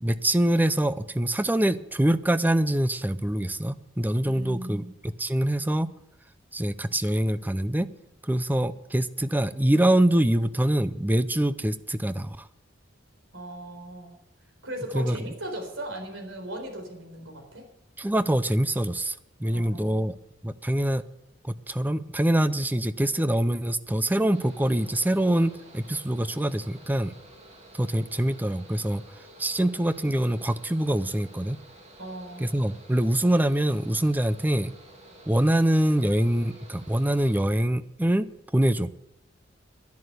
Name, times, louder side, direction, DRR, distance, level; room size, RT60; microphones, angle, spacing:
voice 1, 0.0-5.9 6.5-7.9 8.2-12.5 14.9-15.3 18.0-20.2 20.4-21.0 21.4-27.1 27.7-29.0 29.4-31.6 32.4-34.7 35.3-38.3 38.5-39.0, right 1 dB, 10° right, 14 dB, 0.5 m, -24 dB
voice 2, 4.2-4.9 13.3-14.2 14.6-17.7 19.5-20.1 32.0-32.6, right 1 dB, 80° right, 2 dB, 4.1 m, -38 dB
Mechanical fan, 24.3-37.5, right 1 dB, 35° right, 2.5 m, -51 dB
11.0 x 11.0 x 8.0 m, 0.87 s
head